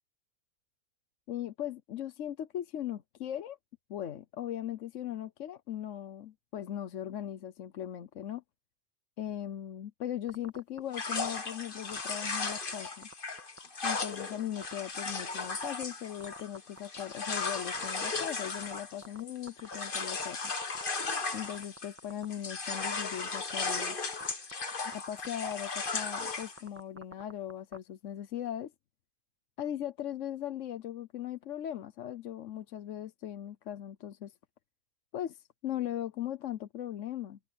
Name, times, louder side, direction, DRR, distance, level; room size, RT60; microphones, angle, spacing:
voice 1, 1.3-3.6 3.9-8.4 9.2-13.1 13.8-20.5 21.3-24.0 24.9-28.7 29.6-34.3 35.1-37.4, left 11 dB, 65° left, 1.1 m, -39 dB
sound 1, 10.3-10.8 11.2-11.4 11.9-13.1 13.4-13.6 14.0-14.2 14.6-14.7 15.1-15.8 16.2-19.2 19.5-20.2 20.5-21.1 21.4-22.3 22.7-23.3 23.6-23.8 24.1-24.6 24.9-25.0 25.2-25.5 25.9-27.8, right 1 dB, 10° right, 1.6 m, -47 dB
sound 2, 10.9-22.0 22.3-26.6, left 4 dB, 40° left, 1.7 m, -36 dB
omnidirectional pair, 1.4 m